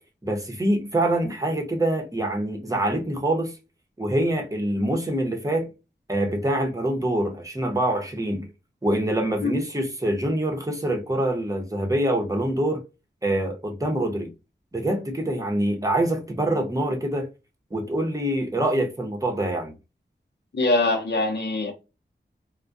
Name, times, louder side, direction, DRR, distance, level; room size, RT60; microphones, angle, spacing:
voice 1, 0.2-3.6 4.0-5.7 6.1-8.5 8.8-12.8 13.2-14.3 14.7-17.3 17.7-19.7, right 1 dB, 15° right, 0.8 m, -25 dB
voice 2, 20.5-21.7, left 2 dB, 60° left, 0.7 m, -23 dB
2.2 x 2.1 x 2.5 m
wide cardioid pair, 60°, 19 cm